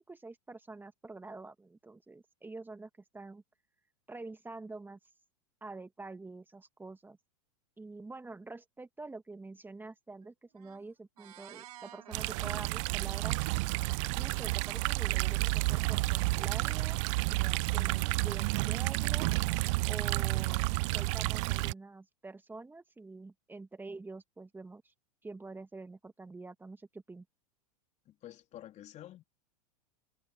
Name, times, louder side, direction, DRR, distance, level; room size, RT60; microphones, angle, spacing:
voice 1, 0.0-3.4 4.1-5.0 5.6-7.2 7.8-13.4 14.1-17.0 17.3-19.3 19.8-24.9 25.2-27.2, right 3 dB, 10° right, 2.0 m, -47 dB
sound 1, 10.2-10.3 10.5-10.9 11.2-13.4 13.7-15.0 15.6-18.0, right 12 dB, 75° right, 3.4 m, -54 dB
sound 2, 12.1-21.7, right 25 dB, 55° right, 0.5 m, -30 dB
voice 2, 28.0-29.2, left 13 dB, 35° left, 3.3 m, -49 dB
hypercardioid pair, 100°, 20 cm